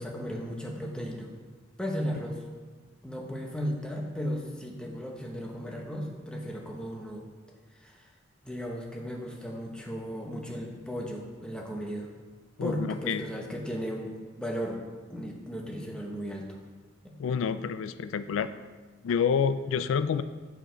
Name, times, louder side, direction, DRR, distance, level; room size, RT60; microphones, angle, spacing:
voice 1, 0.0-1.3 1.8-2.4 3.0-7.3 7.7-8.1 8.4-12.1 12.6-14.8 15.1-16.5 17.0-17.1, equal, 5° left, 0 dB, 0.9 m, -35 dB
voice 2, 12.6-13.3 17.2-18.5 19.0-20.2, left 6 dB, 85° left, 12 dB, 0.3 m, -28 dB
8.1 x 4.9 x 5.1 m, 1.4 s
head